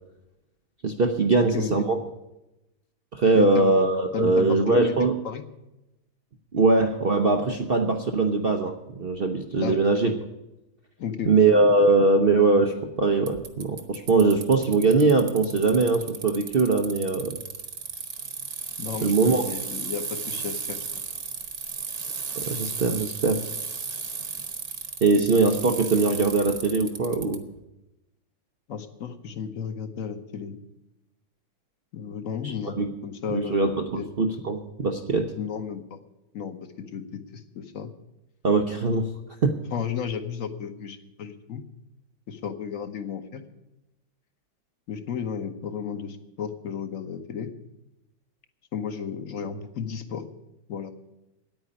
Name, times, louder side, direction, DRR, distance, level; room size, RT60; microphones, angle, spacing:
voice 1, 0.8-2.0 3.1-5.2 6.5-10.1 11.3-17.4 19.0-19.4 22.4-23.4 25.0-27.4 32.4-32.9 33.3-35.3 38.4-39.1 39.4-39.6, right 3 dB, 65° right, 5 dB, 0.5 m, -21 dB
voice 2, 1.3-1.7 3.3-3.7 4.1-4.9 5.2-5.4 9.6-9.8 11.0-11.3 18.8-19.1 19.4-20.8 28.7-30.6 31.9-33.7 33.9-34.1 35.4-36.0 36.3-37.9 39.7-41.6 42.3-43.4 44.9-47.5 48.7-50.2 50.7-50.9, left 7 dB, 50° left, 9 dB, 1.1 m, -33 dB
Bicycle, 13.3-27.4, right 5 dB, 45° right, 1.1 m, -35 dB
9.6 x 9.2 x 10.0 m, 0.93 s
omnidirectional pair, 2.2 m